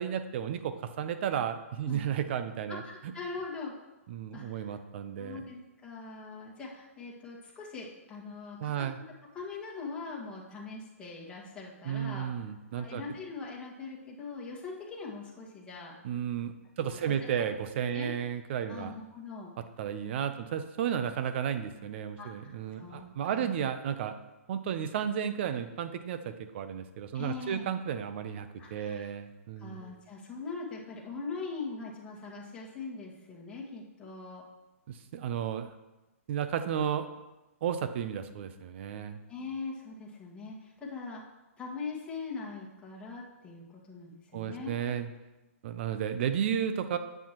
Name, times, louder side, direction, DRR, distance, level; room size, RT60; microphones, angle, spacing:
voice 1, 0.0-3.1 4.1-5.4 8.6-9.0 11.8-13.0 16.0-18.9 19.8-24.1 24.5-29.8 34.9-35.7 36.3-37.0 37.6-39.2 44.3-45.1 45.6-47.0, right 8 dB, 50° right, 10 dB, 0.8 m, -33 dB
voice 2, 2.7-3.7 4.3-4.6 5.2-8.9 9.3-12.3 12.7-16.0 16.8-17.3 17.9-18.1 18.6-19.5 22.2-23.0 23.3-23.6 27.1-27.7 28.6-29.1 29.6-34.4 39.3-41.2 41.6-44.7, left 4 dB, 10° left, -4 dB, 1.9 m, -41 dB
9.9 x 7.8 x 3.1 m, 1.1 s
hypercardioid pair, 135°, 8 cm